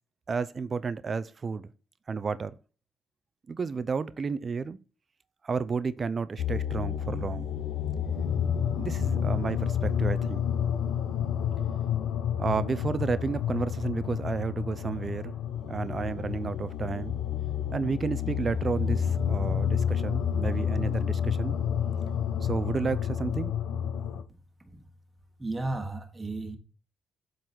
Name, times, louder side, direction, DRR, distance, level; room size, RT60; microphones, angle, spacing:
voice 1, 0.3-1.7 2.1-2.5 3.5-4.8 5.4-7.5 8.7-10.4 12.4-15.3 15.7-17.2 17.7-21.6 22.4-23.5, right 5 dB, 40° right, 0.5 m, -31 dB
sound 1, 6.4-24.2, left 8 dB, 85° left, 1.0 m, -29 dB
voice 2, 25.4-26.6, right 2 dB, 15° right, 1.4 m, -34 dB
7.7 x 4.0 x 4.4 m
cardioid pair, 90°, 0 cm